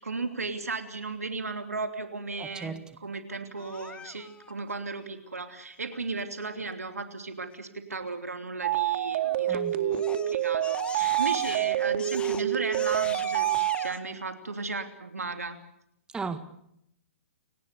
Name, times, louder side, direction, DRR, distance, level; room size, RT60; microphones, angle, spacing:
voice 1, 0.0-2.7 3.0-13.5 13.7-15.6, right 3 dB, 90° right, 3.0 m, -35 dB
voice 2, 2.4-2.8 9.5-9.7 16.1-16.4, right 4 dB, 10° right, 1.6 m, -35 dB
Crying sobbing, 3.6-4.5 9.2-9.5 9.9-14.0, left 6 dB, 15° left, 1.1 m, -42 dB
sound 1, 8.6-13.9, right 12 dB, 45° right, 2.0 m, -27 dB
29.5 x 18.5 x 6.8 m
hypercardioid pair, 125°, 8 cm